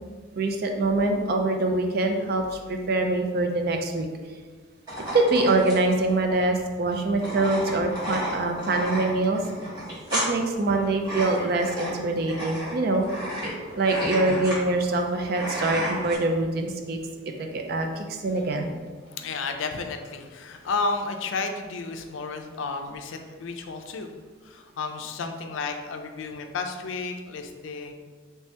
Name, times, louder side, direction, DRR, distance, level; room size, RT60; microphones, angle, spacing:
voice 1, 0.4-4.1 5.1-9.4 10.1-13.1 13.8-17.0 17.4-18.8, right 2 dB, 50° right, 4 dB, 0.4 m, -24 dB
sound 1, 4.9-16.2, equal, 20° right, 1.5 m, -32 dB
voice 2, 19.1-24.1 24.4-27.9, left 4 dB, 75° left, 5 dB, 0.4 m, -32 dB
3.3 x 2.8 x 3.2 m, 1.5 s
head